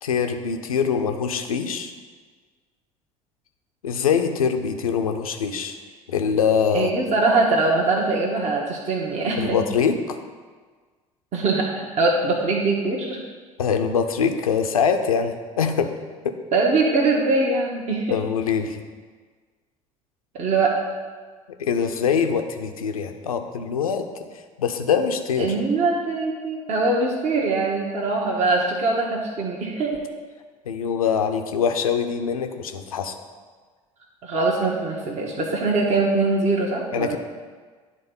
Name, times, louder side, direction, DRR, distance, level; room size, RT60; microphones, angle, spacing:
voice 1, 0.0-1.9 3.8-5.8 6.1-6.9 9.4-10.2 13.6-15.9 16.2-16.3 18.1-18.8 21.6-24.0 24.6-25.5 30.7-33.1 36.9-37.2, left 6 dB, 75° left, 7 dB, 0.6 m, -23 dB
voice 2, 6.7-9.6 11.3-13.2 16.5-18.2 20.3-20.8 25.4-30.1 34.2-37.2, right 3 dB, 40° right, -2 dB, 1.1 m, -22 dB
9.8 x 3.7 x 5.3 m, 1.5 s
figure-of-eight pair, 65°, 18 cm